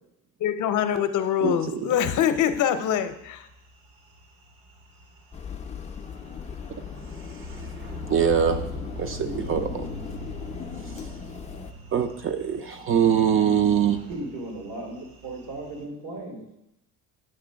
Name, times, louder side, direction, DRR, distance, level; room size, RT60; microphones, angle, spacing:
voice 1, 0.4-3.5, left 9 dB, 55° left, 10 dB, 0.7 m, -24 dB
sound 1, 1.3-15.8, equal, 70° right, 1.1 m, -44 dB
voice 2, 1.4-1.8 8.1-8.6 9.0-9.9 11.9-14.0, right 8 dB, 40° right, 8 dB, 0.4 m, -23 dB
sound 2, 5.3-11.7, left 6 dB, 20° left, 0.4 m, -38 dB
voice 3, 14.1-16.4, right 2 dB, 90° right, -1 dB, 2.8 m, -36 dB
8.7 x 3.0 x 6.2 m, 0.85 s
cardioid pair, 140°, 35 cm